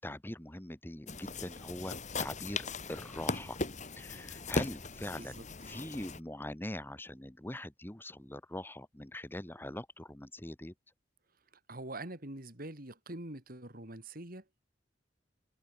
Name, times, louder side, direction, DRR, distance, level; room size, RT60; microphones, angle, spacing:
voice 1, 0.0-2.6 2.9-3.6 4.0-5.3 5.7-10.7, left 1 dB, 10° left, 1.4 m, -42 dB
sound 1, 1.1-6.2, left 3 dB, 40° left, 2.3 m, -38 dB
voice 2, 5.2-5.5 11.7-14.4, right 1 dB, 55° right, 4.1 m, -44 dB
head